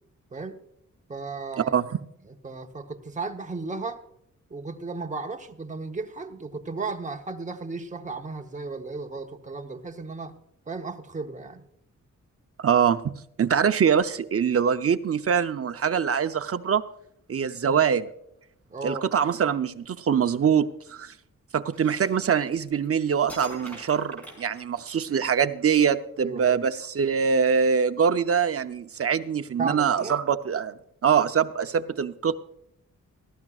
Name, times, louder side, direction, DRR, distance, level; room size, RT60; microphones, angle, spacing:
voice 1, 1.1-1.8 2.3-4.0 4.5-10.4 10.7-11.6 17.6-17.8 18.7-19.1 26.2-26.6 29.6-30.2, right 3 dB, 25° right, 3 dB, 1.0 m, -35 dB
voice 2, 12.6-13.1 13.4-16.8 17.3-18.1 18.8-21.1 21.5-30.7 31.0-32.3, right 7 dB, 45° right, 10 dB, 0.7 m, -23 dB
sound 1, 21.7-22.9 23.3-25.2, right 1 dB, 5° left, 4.8 m, -44 dB
18.0 x 13.5 x 2.4 m, 0.76 s
wide cardioid pair, 140°, 31 cm